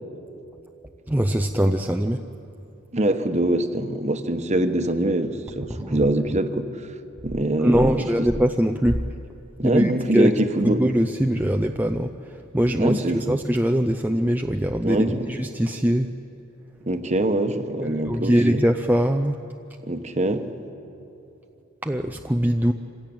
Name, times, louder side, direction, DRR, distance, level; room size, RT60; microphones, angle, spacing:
voice 1, 1.1-2.2 5.8-6.0 7.6-9.0 9.6-10.3 10.6-16.1 18.0-19.4 21.8-22.7, equal, 10° right, 5 dB, 0.5 m, -22 dB
voice 2, 2.9-6.7 7.2-8.0 9.6-10.8 12.8-13.4 14.8-15.3 16.9-18.6 19.8-20.5, right 1 dB, 35° right, 8 dB, 1.1 m, -24 dB
26.0 x 16.5 x 8.8 m, 2.8 s
head